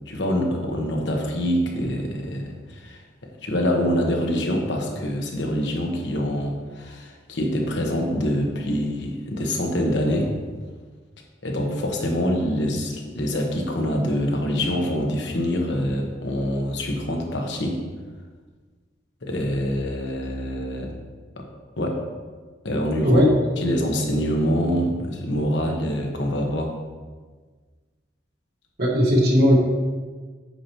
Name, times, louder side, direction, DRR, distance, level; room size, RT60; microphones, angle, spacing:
voice 1, 0.1-3.0 3.4-10.3 11.4-17.8 19.2-20.9 21.4-21.5 21.8-22.0 22.6-23.2 23.6-26.7, equal, 75° left, 1 dB, 1.1 m, -25 dB
voice 2, 23.0-23.4 28.8-29.6, equal, 60° right, -2 dB, 1.5 m, -17 dB
8.6 x 5.6 x 3.0 m, 1.4 s
head